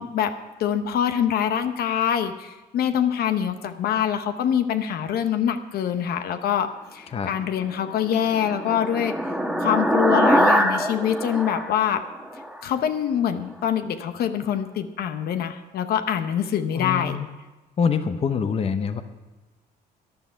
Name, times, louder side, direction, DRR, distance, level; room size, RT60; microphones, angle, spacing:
voice 1, 0.0-9.1 9.6-12.0 12.6-17.2, left 9 dB, 65° left, 9 dB, 0.9 m, -25 dB
sound 1, 7.8-12.6, equal, ahead, 1.4 m, -23 dB
voice 2, 16.7-17.3 17.8-19.0, left 6 dB, 35° left, 9 dB, 0.9 m, -25 dB
14.0 x 10.5 x 5.6 m, 1.2 s
cardioid pair, 110°, 17 cm